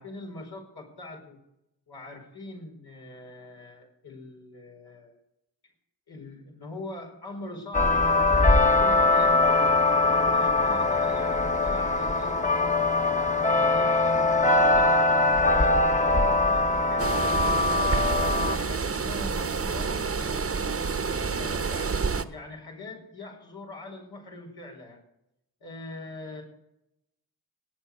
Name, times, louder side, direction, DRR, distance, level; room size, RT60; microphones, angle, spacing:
voice 1, 0.0-1.4 1.9-5.2 6.1-9.3 9.9-14.9 15.5-17.1 17.7-20.4 21.3-25.0 25.6-26.4, left 2 dB, 80° left, -1 dB, 4.9 m, -42 dB
sound 1, 7.7-18.6, left 2 dB, 20° left, 1.1 m, -22 dB
sound 2, 17.0-22.2, right 5 dB, 35° right, 1.0 m, -28 dB
19.0 x 7.5 x 6.8 m, 0.84 s
cardioid pair, 65°, 38 cm